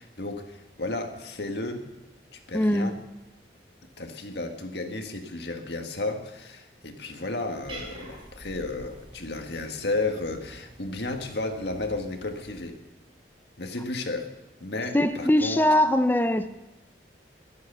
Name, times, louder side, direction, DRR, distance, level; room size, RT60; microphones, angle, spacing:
voice 1, 0.0-1.8 2.3-3.0 4.0-12.8 13.6-14.3 14.6-15.6, left 2 dB, 70° left, 1.7 m, -33 dB
voice 2, 2.5-3.0 14.9-16.5, left 1 dB, 10° left, 0.6 m, -22 dB
Cat, 7.6-12.7, right 1 dB, 30° right, 4.7 m, -47 dB
21.5 x 8.0 x 6.9 m
head